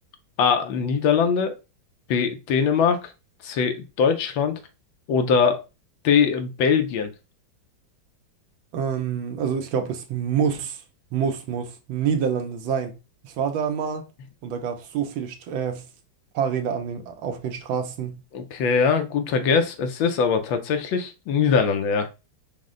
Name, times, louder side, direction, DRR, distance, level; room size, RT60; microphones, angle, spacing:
voice 1, 0.4-1.5 2.1-3.0 3.4-4.6 5.1-5.6 6.0-7.1 18.3-22.1, left 6 dB, 80° left, 1.4 m, -21 dB
voice 2, 8.7-10.8 11.1-12.9 13.2-14.0 14.4-15.8 16.3-18.2, right 7 dB, 80° right, 1.5 m, -27 dB
5.2 x 2.1 x 3.7 m
omnidirectional pair, 2.1 m